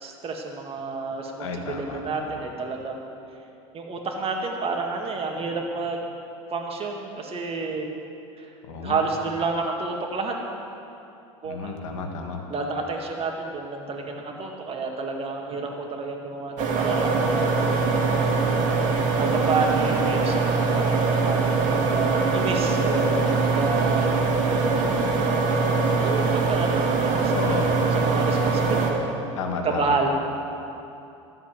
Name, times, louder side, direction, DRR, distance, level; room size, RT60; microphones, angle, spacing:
voice 1, 0.0-3.1 3.7-6.1 6.5-7.9 8.4-8.5 8.8-10.3 11.4-11.7 12.5-17.8 19.2-24.2 26.0-27.6 27.9-29.2 29.6-30.1, right 3 dB, 35° right, 1 dB, 2.1 m, -30 dB
voice 2, 1.4-2.3 8.7-9.0 11.4-12.4 27.3-27.7 29.4-30.1, left 4 dB, 70° left, 3 dB, 1.8 m, -32 dB
sound 1, 16.6-28.9, right 4 dB, 50° right, 2.1 m, -22 dB
13.5 x 7.7 x 7.6 m, 2.8 s
hypercardioid pair, 80°, 17 cm